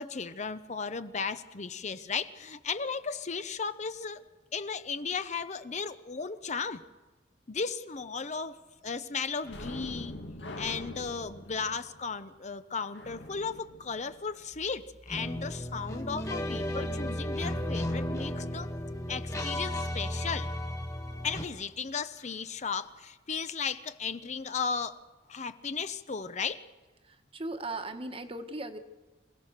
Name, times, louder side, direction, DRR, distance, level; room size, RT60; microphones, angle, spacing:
voice 1, 0.0-4.2 4.5-6.8 7.5-8.6 8.8-10.2 10.6-18.7 19.1-20.5 21.2-25.0 25.3-26.6, left 5 dB, 40° left, 12 dB, 0.7 m, -35 dB
sound 1, 9.4-14.8 22.2-22.3 22.7-22.9, left 1 dB, 75° left, 2.2 m, -44 dB
sound 2, 15.1-21.4, left 1 dB, 20° left, 1.9 m, -34 dB
voice 2, 27.0-28.8, right 2 dB, 30° right, 8 dB, 1.3 m, -38 dB
26.5 x 16.5 x 6.6 m, 1.2 s
head